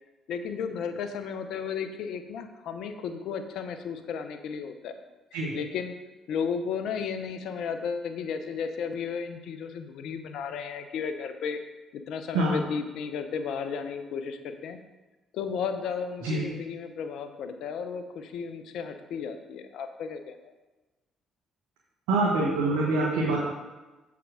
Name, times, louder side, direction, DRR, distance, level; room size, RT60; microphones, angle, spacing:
voice 1, 0.3-4.9 5.5-5.9 6.3-11.6 11.9-14.8 15.3-20.4, left 6 dB, 70° left, 8 dB, 0.7 m, -34 dB
voice 2, 22.1-23.4, right 2 dB, 85° right, -4 dB, 1.4 m, -25 dB
7.5 x 5.8 x 4.9 m, 1.1 s
hypercardioid pair, 60°, 0 cm